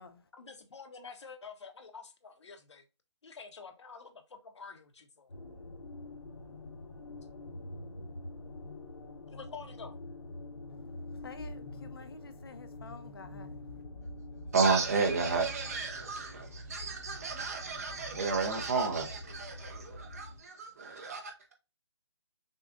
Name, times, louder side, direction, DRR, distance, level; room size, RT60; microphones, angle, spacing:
voice 1, 0.4-2.8 3.2-5.3 9.3-10.0, left 5 dB, 70° left, 1.0 m, -48 dB
sound 1, 5.3-20.4, left 2 dB, 90° left, 1.4 m, -46 dB
voice 2, 11.2-13.5, left 4 dB, 55° left, 0.6 m, -49 dB
voice 3, 14.5-21.5, right 4 dB, 30° right, 0.8 m, -32 dB
6.3 x 2.4 x 2.5 m
hypercardioid pair, 170°, 15 cm